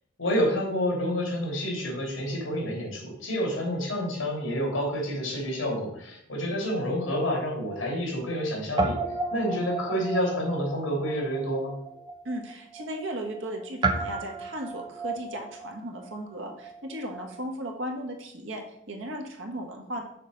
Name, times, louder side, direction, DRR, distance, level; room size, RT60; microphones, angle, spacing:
voice 1, 0.2-11.7, equal, 70° left, -1 dB, 3.0 m, -29 dB
Guitar, 6.7-8.5 8.7-17.4, right 3 dB, 20° right, 0.7 m, -34 dB
voice 2, 12.2-20.0, right 1 dB, 75° right, 2 dB, 1.5 m, -36 dB
6.6 x 4.1 x 6.3 m, 0.74 s
head